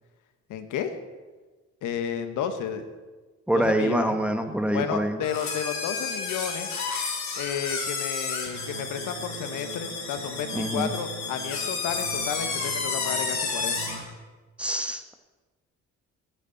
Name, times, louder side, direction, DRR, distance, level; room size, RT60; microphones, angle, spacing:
voice 1, 0.5-0.9 1.8-2.8 3.5-4.2 4.7-6.7 7.4-13.9, left 8 dB, 85° left, 8 dB, 1.4 m, -32 dB
voice 2, 3.5-5.2 10.5-10.9 14.6-15.1, right 1 dB, 5° right, 6 dB, 1.4 m, -25 dB
sound 1, 5.2-14.1, left 5 dB, 65° left, 3.0 m, -31 dB
sound 2, 8.5-14.0, right 7 dB, 75° right, 1.6 m, -42 dB
18.5 x 9.6 x 4.1 m, 1.3 s
cardioid pair, 90°, 30 cm